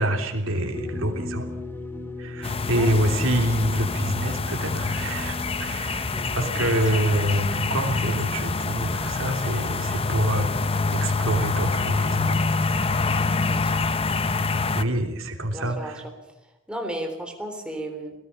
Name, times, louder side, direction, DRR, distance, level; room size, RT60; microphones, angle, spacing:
voice 1, 0.0-1.5 2.2-10.6 10.9-13.1 14.7-16.0, right 1 dB, 70° right, 4 dB, 3.2 m, -27 dB
purgatory ambient, 0.7-8.0, left 2 dB, 10° left, 2.1 m, -37 dB
sound 1, 2.4-14.8, left 3 dB, 30° left, 0.8 m, -26 dB
voice 2, 6.1-6.8 13.5-13.8 15.5-15.9 16.7-18.1, right 1 dB, 5° right, 3 dB, 3.6 m, -34 dB
26.5 x 18.0 x 5.6 m, 0.96 s
head